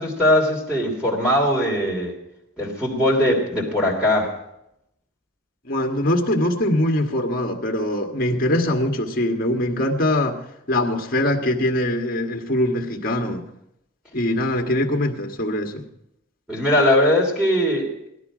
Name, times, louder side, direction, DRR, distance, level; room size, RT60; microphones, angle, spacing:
voice 1, 0.0-2.1 2.6-4.4 16.5-17.9, left 1 dB, 5° right, -4 dB, 3.1 m, -20 dB
voice 2, 5.6-10.4 10.7-13.4 14.1-15.9, left 1 dB, 45° left, 2 dB, 1.6 m, -22 dB
18.0 x 12.5 x 5.0 m, 0.81 s
head